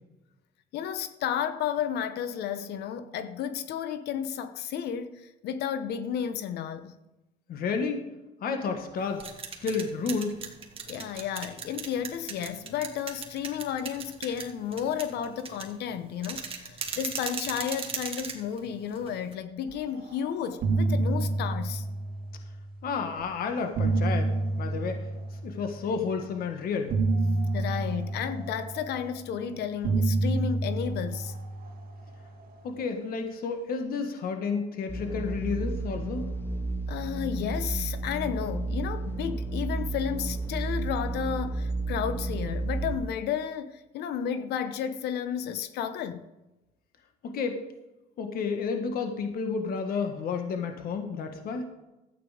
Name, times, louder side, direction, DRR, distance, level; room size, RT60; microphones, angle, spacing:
voice 1, 0.7-7.0 10.9-21.9 27.5-31.3 36.9-46.3, left 8 dB, 75° left, 0.9 m, -32 dB
voice 2, 7.5-8.1 8.4-9.3 9.6-10.4 22.8-25.0 25.4-27.0 32.6-36.3 47.2-47.6 48.2-51.7, left 5 dB, 60° left, 1.6 m, -31 dB
sound 1, 9.0-19.3, right 5 dB, 35° right, 1.9 m, -39 dB
sound 2, 20.0-20.2 20.4-22.8 23.5-25.9 26.9-29.3 29.8-32.4, right 2 dB, 60° right, 2.3 m, -29 dB
sound 3, 34.9-42.9, right 2 dB, 10° left, 0.9 m, -32 dB
13.0 x 9.0 x 5.1 m
cardioid pair, 110°, 17 cm